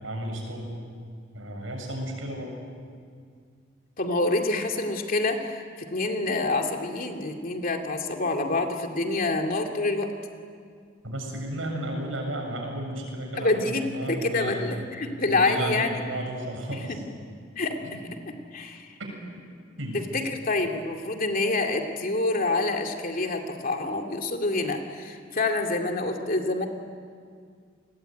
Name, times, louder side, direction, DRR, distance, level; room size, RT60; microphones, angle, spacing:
voice 1, 0.0-0.7 1.3-2.5 11.0-14.6 15.0-17.0 17.8-18.0 19.0-19.1 19.8-20.0, right 1 dB, 90° right, 2 dB, 7.4 m, -33 dB
voice 2, 4.0-10.1 13.4-15.9 16.9-17.0 17.6-17.8 18.5-18.9 20.1-26.7, left 2 dB, 45° left, 3 dB, 2.6 m, -27 dB
29.5 x 21.0 x 9.3 m, 2.1 s
head